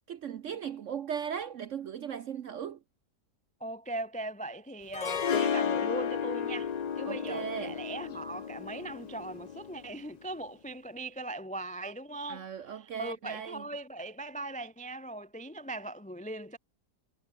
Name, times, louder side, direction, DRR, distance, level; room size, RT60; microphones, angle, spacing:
voice 1, 0.1-2.8 7.0-7.8 12.3-13.6, right 8 dB, 60° right, 0.9 m, -37 dB
voice 2, 3.6-16.6, right 2 dB, 10° left, 0.4 m, -39 dB
Harp, 4.9-10.0, left 7 dB, 80° left, 0.3 m, -33 dB
omnidirectional pair, 1.7 m